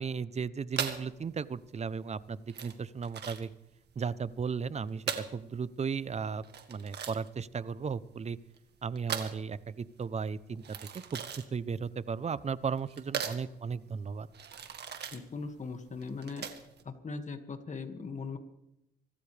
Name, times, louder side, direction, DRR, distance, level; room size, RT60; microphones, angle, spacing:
voice 1, 0.0-3.5 4.0-6.4 6.7-8.4 8.8-10.6 11.1-11.2 11.5-14.3, right 6 dB, 35° right, 17 dB, 0.7 m, -35 dB
sound 1, 0.7-16.8, right 7 dB, 55° right, 1.8 m, -40 dB
voice 2, 15.1-16.5 16.8-18.4, left 4 dB, 35° left, 7 dB, 2.0 m, -39 dB
25.5 x 13.5 x 3.4 m, 0.87 s
cardioid pair, 90°, 20 cm